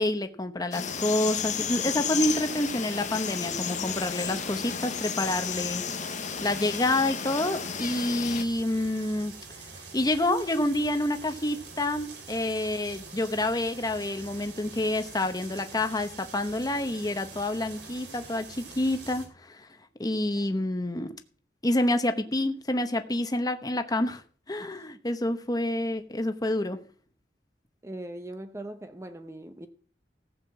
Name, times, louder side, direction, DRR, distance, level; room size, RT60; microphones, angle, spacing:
voice 1, 0.0-5.8 6.4-9.3 9.9-19.7 20.0-21.1 21.6-24.2 24.5-26.8, left 1 dB, 20° left, 1.0 m, -28 dB
sound 1, 0.7-8.4, left 7 dB, 45° left, 0.8 m, -33 dB
sound 2, 0.9-19.3, right 4 dB, 70° right, 3.1 m, -45 dB
voice 2, 27.8-29.7, right 1 dB, 15° right, 0.7 m, -40 dB
15.0 x 6.6 x 7.4 m
head